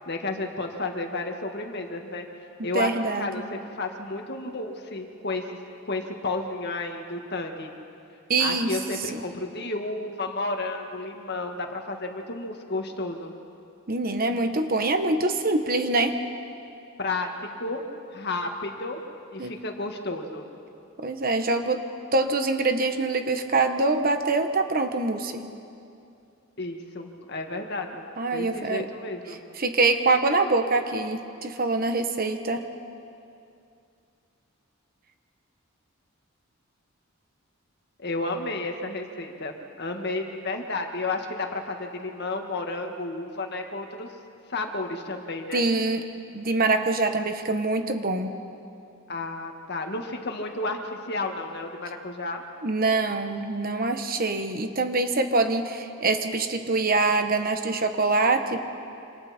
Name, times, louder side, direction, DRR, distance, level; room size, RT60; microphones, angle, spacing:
voice 1, 0.1-2.3 2.6-5.6 5.9-7.7 8.4-13.3 17.0-17.8 18.1-19.0 19.3-20.4 26.6-28.0 28.3-29.4 38.0-44.1 44.5-45.7 49.1-52.4, left 2 dB, 50° left, 3 dB, 1.9 m, -32 dB
voice 2, 2.7-3.3 8.3-8.8 9.1-9.2 13.9-16.2 19.4-19.5 21.0-21.8 22.1-25.4 28.2-28.8 29.3-32.6 45.5-46.0 46.3-48.3 52.6-58.6, right 3 dB, 45° right, 6 dB, 1.3 m, -24 dB
27.0 x 26.5 x 4.4 m, 2.6 s
head